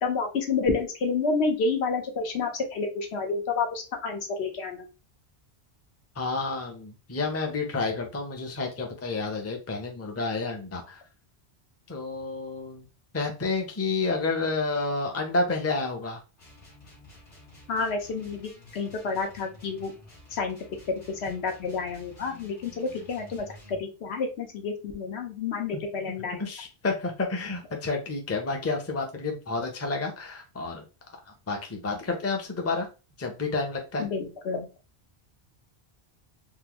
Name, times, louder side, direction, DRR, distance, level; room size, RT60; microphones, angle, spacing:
voice 1, 0.0-4.8 17.7-19.9 20.3-20.6 20.9-26.4 34.0-34.7, left 4 dB, 85° left, 4 dB, 1.1 m, -29 dB
voice 2, 6.2-11.0 11.9-12.9 13.1-16.2 25.7-25.8 26.4-30.8 31.5-32.9 33.2-34.1, left 3 dB, 20° left, 2 dB, 0.5 m, -30 dB
sound 1, 16.4-23.8, left 2 dB, 55° left, 1.6 m, -51 dB
3.7 x 2.1 x 2.9 m, 0.31 s
omnidirectional pair, 1.1 m